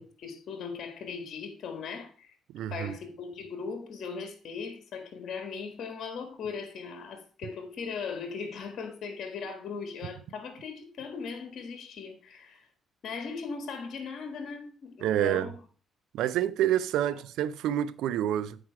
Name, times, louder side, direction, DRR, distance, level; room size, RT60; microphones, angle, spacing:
voice 1, 0.0-2.3 2.7-12.7 13.0-15.6, left 5 dB, 65° left, 1.6 m, -39 dB
voice 2, 2.5-3.0 15.0-15.5 16.1-18.6, right 11 dB, 85° right, 0.4 m, -28 dB
8.9 x 4.7 x 4.6 m
cardioid pair, 90°, 0 cm